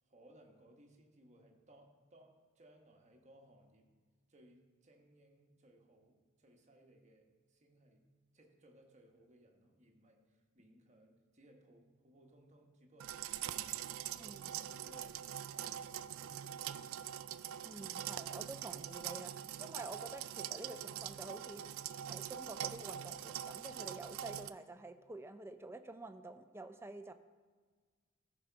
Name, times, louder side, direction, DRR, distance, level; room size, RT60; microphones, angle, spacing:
voice 1, 0.0-3.9 4.3-8.0 8.3-15.2 15.5-17.2, right 1 dB, 35° right, 2 dB, 1.2 m, -64 dB
sound 1, 13.0-24.5, right 10 dB, 90° right, 0.4 m, -43 dB
voice 2, 14.2-14.5 17.6-19.3 19.6-21.7 22.0-27.1, right 2 dB, 10° right, 9 dB, 0.4 m, -49 dB
14.5 x 5.1 x 4.5 m, 1.5 s
head